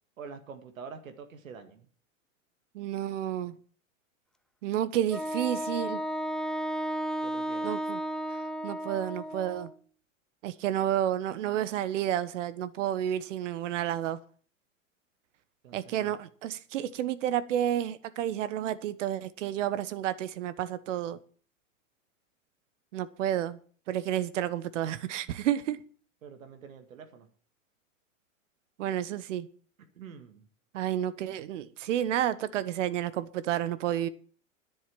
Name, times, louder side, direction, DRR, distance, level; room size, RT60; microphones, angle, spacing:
voice 1, 0.2-1.9 7.2-7.7 15.6-16.2 26.2-27.3 30.0-30.4, right 6 dB, 80° right, 7 dB, 2.1 m, -46 dB
voice 2, 2.7-3.5 4.6-6.0 7.6-8.0 8.3-9.7 10.4-14.2 15.7-21.2 22.9-23.6 23.9-25.8 28.8-29.5 30.7-34.1, right 11 dB, 65° right, 15 dB, 1.3 m, -30 dB
Wind instrument woodwind instrument, 5.1-9.7, equal, ahead, 0.5 m, -33 dB
10.5 x 7.8 x 8.7 m, 0.43 s
hypercardioid pair, 115°, 40 cm